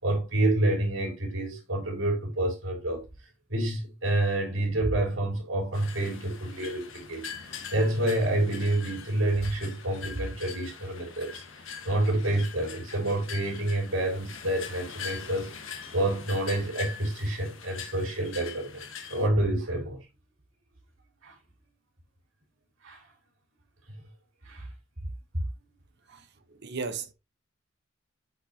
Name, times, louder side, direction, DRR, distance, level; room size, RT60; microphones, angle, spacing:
voice 1, 0.0-3.0 3.5-18.8 19.1-20.1 21.2-21.3 22.8-23.0 24.4-24.7 26.1-26.2, right 1 dB, 85° right, 3.3 m, -28 dB
sound 1, 5.7-19.3, left 6 dB, 90° left, 1.2 m, -43 dB
voice 2, 26.5-27.1, right 4 dB, 60° right, 1.0 m, -34 dB
8.0 x 4.6 x 2.8 m
head